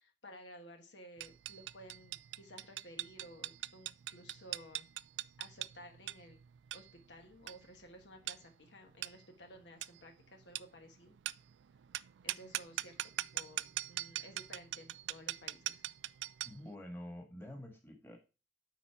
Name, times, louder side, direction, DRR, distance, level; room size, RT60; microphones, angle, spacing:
voice 1, 0.0-4.9 5.4-6.4 6.7-11.2 12.2-13.0 13.3-15.8, equal, 75° left, 4 dB, 1.4 m, -55 dB
sound 1, 1.2-16.7, right 14 dB, 80° right, 0.3 m, -43 dB
voice 2, 16.4-18.2, left 1 dB, 15° left, 2 dB, 1.6 m, -47 dB
9.3 x 4.2 x 4.4 m, 0.30 s
head